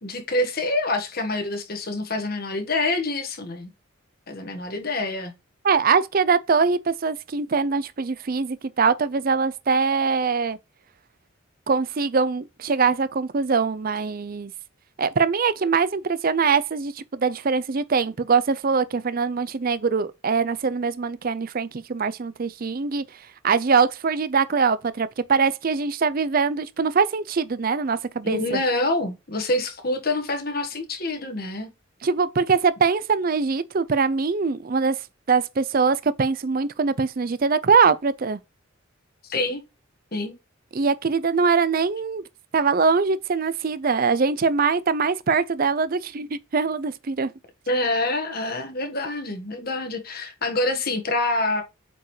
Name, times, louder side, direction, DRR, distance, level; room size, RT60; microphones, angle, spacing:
voice 1, 0.0-3.7 4.3-5.3 28.2-31.7 39.3-39.6 40.1-40.4 47.7-51.6, left 2 dB, 45° left, 1.5 m, -26 dB
voice 2, 5.6-10.6 11.7-14.5 15.0-23.0 23.4-28.6 32.0-35.0 35.3-38.4 40.7-42.2 42.5-47.3, right 5 dB, 45° right, 0.5 m, -22 dB
8.1 x 4.6 x 3.2 m
head